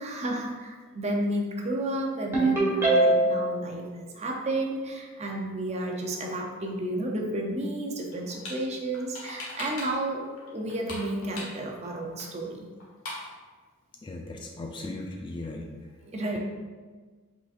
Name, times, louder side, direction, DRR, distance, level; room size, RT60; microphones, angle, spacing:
voice 1, 0.0-12.7 16.1-16.4, right 1 dB, 30° right, 0 dB, 0.6 m, -32 dB
Ringtone, 2.3-3.5, right 2 dB, 10° right, 1.1 m, -21 dB
sound 1, 8.1-8.6 8.9-10.1 10.4-11.9 12.2-12.3 12.5-12.6 12.8-13.3, left 2 dB, 85° left, 1.3 m, -39 dB
voice 2, 14.0-15.7, left 2 dB, 20° left, 2 dB, 0.3 m, -37 dB
4.9 x 3.9 x 2.5 m, 1.4 s
head